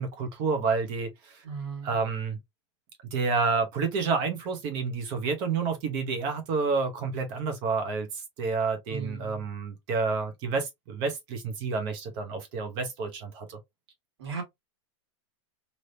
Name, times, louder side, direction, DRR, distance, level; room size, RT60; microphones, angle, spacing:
voice 1, 0.0-1.4 1.8-2.4 3.1-13.6, right 4 dB, 30° right, 0.8 m, -29 dB
voice 2, 1.4-2.0 8.9-9.5 14.2-14.4, right 5 dB, 65° right, 1.7 m, -36 dB
3.3 x 2.7 x 2.7 m
supercardioid pair, 170°, 15 cm